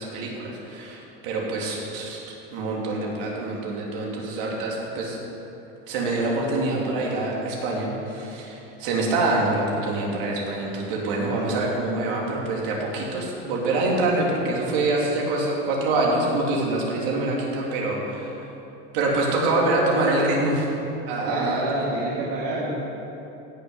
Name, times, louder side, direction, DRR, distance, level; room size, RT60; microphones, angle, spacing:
voice 1, 0.0-2.2 2.5-5.2 5.9-18.3 18.9-20.7 21.1-21.6, right 2 dB, 70° right, -3 dB, 2.9 m, -25 dB
voice 2, 21.2-22.7, right 2 dB, 50° right, -7 dB, 2.2 m, -27 dB
16.5 x 6.5 x 5.7 m, 3.0 s
supercardioid pair, 165°, 29 cm